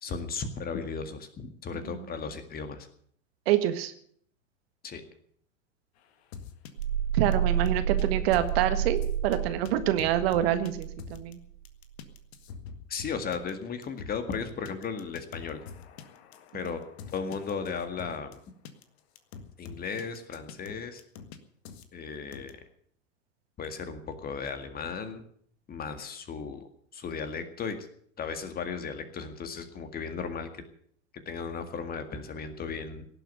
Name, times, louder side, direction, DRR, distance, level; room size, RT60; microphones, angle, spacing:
voice 1, 0.0-2.9 4.8-5.0 12.9-15.6 16.5-16.8 17.1-18.4 19.6-21.0 21.9-22.6 23.6-25.2 25.7-26.6 26.9-27.8 28.2-30.6 31.3-33.1, left 5 dB, 25° left, 8 dB, 1.9 m, -35 dB
voice 2, 3.5-3.9 7.1-11.4, right 12 dB, 50° right, 10 dB, 1.7 m, -26 dB
sound 1, 6.3-6.8 7.3-8.0 8.3-8.5 9.0-9.4 9.6-9.7 10.0-11.3 11.6-18.3 18.6-18.8 19.2-21.4 21.6-21.8 22.3-22.5, left 6 dB, 55° left, 1.8 m, -44 dB
sound 2, 6.8-11.4, right 8 dB, 85° right, 3.8 m, -30 dB
17.5 x 7.9 x 9.0 m, 0.63 s
hypercardioid pair, 105°, 38 cm